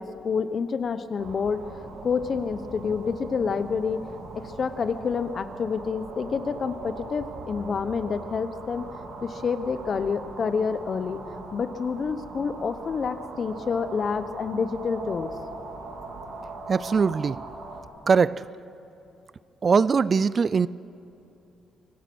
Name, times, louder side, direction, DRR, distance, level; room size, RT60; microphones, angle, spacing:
voice 1, 0.0-8.9 9.2-11.2 11.5-15.3, left 5 dB, 45° left, 1.0 m, -28 dB
sound 1, 1.2-17.8, right 3 dB, 75° right, 3.2 m, -40 dB
voice 2, 16.7-17.4 18.1-18.5 19.6-20.7, right 5 dB, 40° right, 0.4 m, -21 dB
24.5 x 17.5 x 6.2 m
cardioid pair, 90°, 0 cm